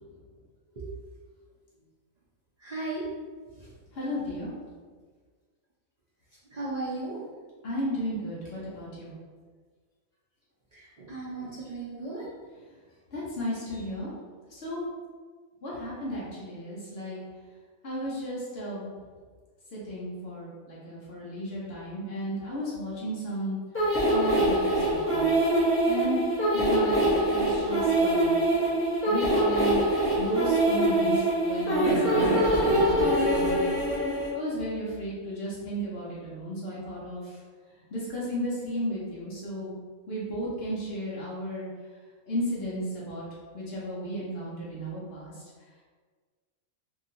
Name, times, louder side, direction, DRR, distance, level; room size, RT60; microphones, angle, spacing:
voice 1, 2.6-3.0 3.6-3.7 6.5-7.2 10.7-12.3, right 2 dB, 70° right, -8 dB, 0.3 m, -36 dB
voice 2, 3.9-4.5 7.6-9.1 13.1-14.1 14.5-14.8 15.6-17.2 17.8-18.9 19.7-23.6 24.1-25.3 25.9-26.2 26.5-28.3 29.1-29.8 30.2-33.6 34.3-37.4 37.9-39.8 40.1-41.7 42.3-43.2 43.5-45.3, equal, 55° left, -7 dB, 0.9 m, -34 dB
sound 1, 23.7-34.3, right 1 dB, 15° left, 0.6 m, -24 dB
2.8 x 2.8 x 2.6 m, 1.5 s
omnidirectional pair, 1.5 m